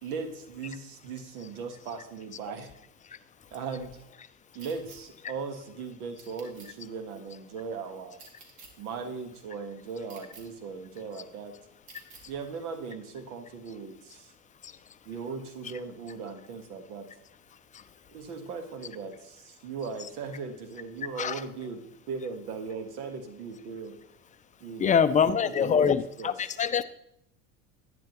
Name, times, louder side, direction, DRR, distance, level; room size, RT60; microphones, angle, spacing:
voice 1, 0.0-2.7 3.5-3.9 4.5-8.2 8.8-11.5 12.3-14.3 15.0-17.1 18.1-21.8 22.1-24.0 24.6-24.9 25.3-25.9 26.2-26.3, right 5 dB, 80° right, 7 dB, 1.5 m, -38 dB
sound 1, 4.6-5.0 6.2-6.7 8.1-8.7 10.1-10.4 11.9-12.2, right 4 dB, 55° right, 2.4 m, -50 dB
voice 2, 24.8-26.8, left 7 dB, 20° left, 12 dB, 0.4 m, -24 dB
10.5 x 10.0 x 3.0 m, 0.76 s
hypercardioid pair, 85°, 43 cm